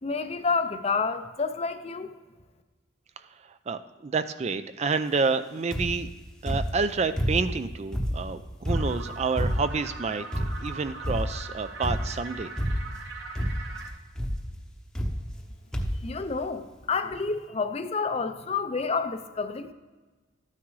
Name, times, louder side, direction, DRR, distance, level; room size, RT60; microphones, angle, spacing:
voice 1, 0.0-2.1 16.0-19.7, left 4 dB, 30° left, 9 dB, 0.5 m, -29 dB
voice 2, 3.7-6.1 6.4-12.5, right 4 dB, 35° right, 11 dB, 0.4 m, -29 dB
sound 1, 5.7-6.1 6.5-7.6 7.9-9.9 10.3-10.7 11.0-11.5 11.8-12.2 12.6-13.1 13.3-13.8 14.2-14.5 14.9-15.5 15.7-16.1 16.8-16.9 17.1-17.2, equal, 5° left, 0.8 m, -29 dB
sound 2, 8.7-13.9, right 3 dB, 60° right, 1.0 m, -41 dB
12.5 x 9.6 x 3.2 m, 1.3 s
head